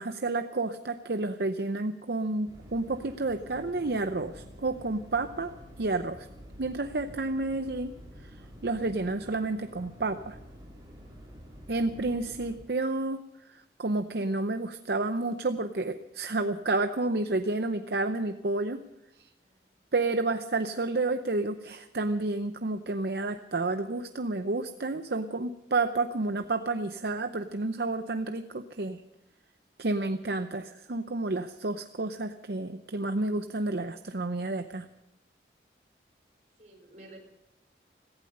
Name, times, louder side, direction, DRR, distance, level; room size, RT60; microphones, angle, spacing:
voice 1, 0.0-5.5 5.8-6.3 6.6-7.9 8.2-8.3 8.6-10.4 11.7-13.2 13.5-18.8 19.2-19.3 19.9-29.0 29.8-34.9, right 2 dB, 65° right, 8 dB, 0.7 m, -30 dB
sound 1, 2.5-12.6, equal, 20° right, 4.4 m, -49 dB
voice 2, 19.4-19.7 36.6-37.2, right 2 dB, 40° right, 2 dB, 4.4 m, -51 dB
17.0 x 15.5 x 5.4 m, 0.89 s
head